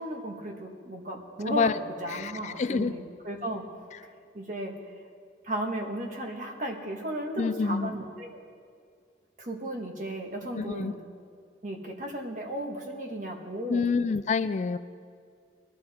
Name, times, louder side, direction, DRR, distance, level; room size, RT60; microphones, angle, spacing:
voice 1, 0.0-1.7 2.0-3.6 4.3-4.7 5.4-8.4 9.4-11.0 11.6-13.9, right 1 dB, 40° right, 1 dB, 1.6 m, -35 dB
voice 2, 1.5-1.8 2.1-3.0 7.4-7.9 10.5-10.9 13.7-14.8, left 5 dB, 40° left, 12 dB, 0.3 m, -27 dB
21.5 x 12.0 x 4.3 m, 2.1 s
head